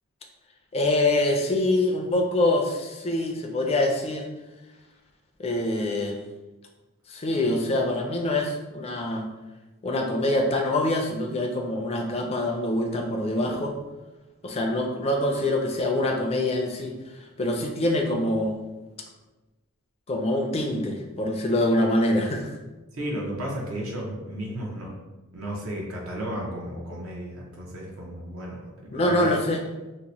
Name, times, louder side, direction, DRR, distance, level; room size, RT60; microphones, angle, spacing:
voice 1, 0.7-4.3 5.4-6.2 7.1-9.3 9.8-13.8 14.4-16.9 17.4-18.6 20.1-22.5 28.9-29.6, left 1 dB, 30° left, 2 dB, 0.4 m, -25 dB
voice 2, 22.9-24.9 25.3-29.3, equal, 70° right, -3 dB, 0.7 m, -33 dB
2.9 x 2.0 x 3.9 m, 1.1 s
head